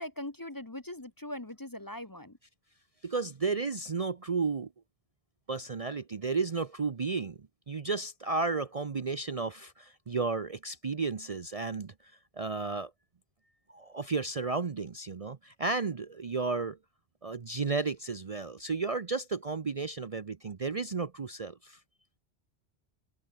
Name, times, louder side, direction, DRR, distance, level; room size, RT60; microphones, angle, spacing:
voice 1, 0.0-2.4, left 1 dB, 20° left, 1.0 m, -41 dB
voice 2, 3.0-4.7 5.5-7.4 7.7-11.9 12.4-12.9 13.7-16.8 17.2-21.8, right 4 dB, 40° right, 0.7 m, -33 dB
open air
omnidirectional pair, 1.1 m